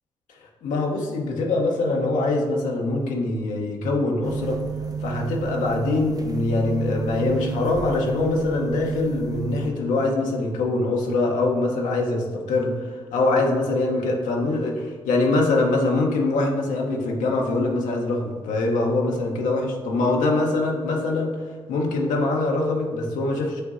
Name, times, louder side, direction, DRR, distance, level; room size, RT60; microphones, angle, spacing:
voice 1, 0.6-4.6 5.0-21.4 21.7-23.6, left 2 dB, 80° left, 0 dB, 0.7 m, -23 dB
sound 1, 4.2-9.7, right 6 dB, 30° right, 0.4 m, -31 dB
7.7 x 2.6 x 2.5 m, 1.5 s
supercardioid pair, 50°, 13 cm